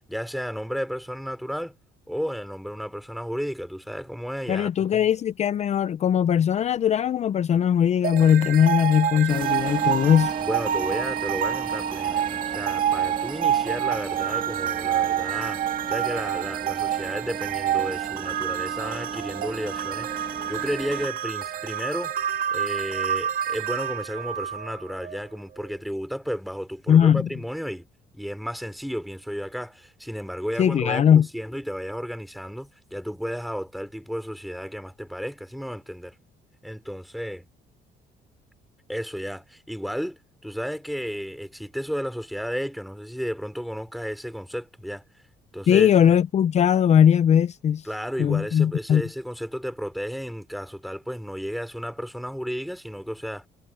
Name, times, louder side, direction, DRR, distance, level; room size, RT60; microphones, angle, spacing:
voice 1, 0.1-1.8 2.1-5.0 10.4-15.6 15.9-20.1 20.5-27.9 28.1-36.1 36.6-37.5 38.9-45.0 45.5-46.2 47.8-53.5, equal, ahead, 3.0 m, -33 dB
voice 2, 4.5-10.3 26.9-27.2 30.6-31.3 45.7-47.9 48.2-49.0, left 9 dB, 40° left, 0.5 m, -19 dB
sound 1, 8.0-25.2, right 10 dB, 55° right, 1.7 m, -28 dB
sound 2, 9.3-21.1, right 4 dB, 30° right, 2.0 m, -36 dB
cardioid pair, 110°, 17 cm